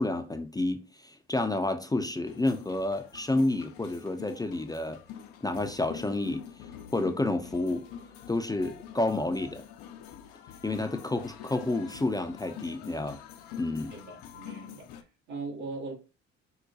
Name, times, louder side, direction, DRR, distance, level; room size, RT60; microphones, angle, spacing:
voice 1, 0.0-5.0 5.4-6.5 6.9-7.9 8.3-9.6 10.6-13.2 13.6-13.9, left 2 dB, 10° left, 0.4 m, -30 dB
sound 1, 2.3-15.0, left 9 dB, 75° left, 0.6 m, -46 dB
voice 2, 13.9-15.9, right 3 dB, 85° right, 1.7 m, -40 dB
4.7 x 2.1 x 2.6 m
hypercardioid pair, 60°, 35 cm